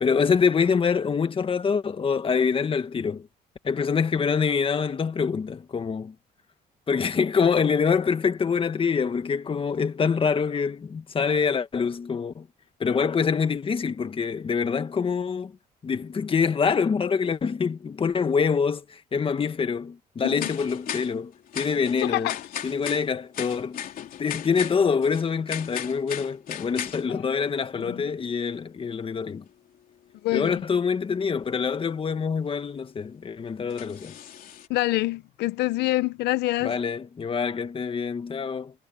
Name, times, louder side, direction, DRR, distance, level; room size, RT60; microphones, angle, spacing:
voice 1, 0.0-3.3 3.6-6.1 6.9-12.5 12.8-15.5 15.8-22.3 22.6-23.8 24.2-29.4 30.3-34.1 36.6-38.7, left 6 dB, 30° left, 1.7 m, -25 dB
sound 1, 20.4-27.9 28.5-28.6 29.7-29.8 30.0-30.1 30.5-30.6 31.3-31.4 32.4-32.5 33.7-34.7, left 10 dB, 60° left, 3.7 m, -37 dB
voice 2, 22.0-22.4 27.1-27.2 27.8-28.0 30.2-30.6 34.7-36.8, left 17 dB, 80° left, 0.9 m, -26 dB
cardioid pair, 110°, 17 cm